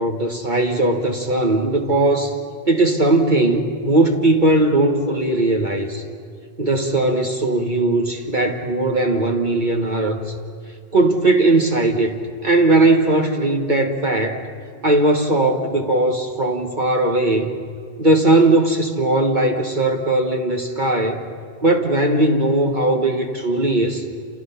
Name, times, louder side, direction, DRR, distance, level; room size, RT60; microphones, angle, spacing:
voice 1, 0.0-2.4 2.7-6.0 6.6-10.3 10.9-14.4 14.8-17.6 18.0-21.2 21.6-24.0, right 2 dB, 40° right, 2 dB, 1.5 m, -18 dB
29.5 x 28.5 x 5.7 m, 2.3 s
omnidirectional pair, 1.2 m